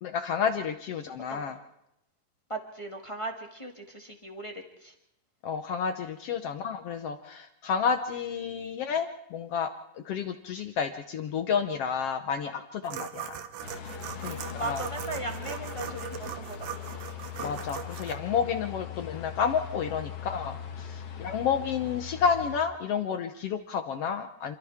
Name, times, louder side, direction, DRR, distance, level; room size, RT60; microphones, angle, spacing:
voice 1, 0.0-1.6 5.4-13.4 14.2-14.8 17.4-24.6, left 6 dB, 80° left, 8 dB, 1.3 m, -30 dB
voice 2, 2.5-4.5 4.8-4.9 14.2-16.9, right 2 dB, 15° left, 2 dB, 1.2 m, -38 dB
Sawing wood, 12.8-18.2, right 9 dB, 80° right, 2.9 m, -39 dB
sound 1, 13.6-22.6, left 7 dB, 50° left, 2.2 m, -40 dB
27.5 x 27.0 x 3.6 m, 0.83 s
omnidirectional pair, 4.0 m